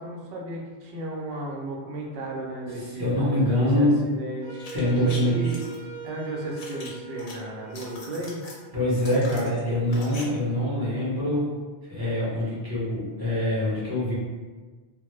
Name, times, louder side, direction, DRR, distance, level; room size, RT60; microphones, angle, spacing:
voice 1, 0.0-3.1 3.6-4.7 5.0-5.7 6.0-8.4, right 1 dB, 65° right, -1 dB, 0.7 m, -34 dB
voice 2, 2.9-4.0 4.7-5.4 8.7-11.5 11.9-14.1, left 1 dB, 25° right, -9 dB, 0.7 m, -24 dB
Wind instrument woodwind instrument, 4.4-9.3, right 3 dB, 45° right, 0.3 m, -42 dB
sound 1, 4.5-5.8 6.6-7.3 7.6-8.6 9.0-10.2 10.5-10.6, left 2 dB, 60° left, 0.6 m, -42 dB
2.2 x 2.0 x 3.0 m, 1.4 s
omnidirectional pair, 1.1 m